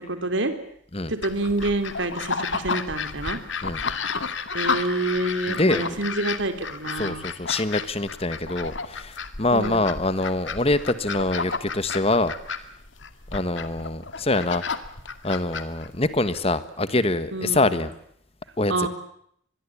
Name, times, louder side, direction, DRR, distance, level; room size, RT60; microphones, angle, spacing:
voice 1, 0.1-0.5 1.1-3.4 4.5-7.2 9.5-9.8 17.3-17.6 18.7-18.9, right 2 dB, 70° right, 9 dB, 3.3 m, -27 dB
sound 1, 1.2-16.4, left 5 dB, 70° left, 2.2 m, -32 dB
voice 2, 5.5-6.0 6.9-12.3 13.3-14.6 15.2-17.9 18.6-18.9, left 2 dB, 30° left, 13 dB, 1.4 m, -24 dB
25.5 x 21.5 x 8.6 m, 0.69 s
head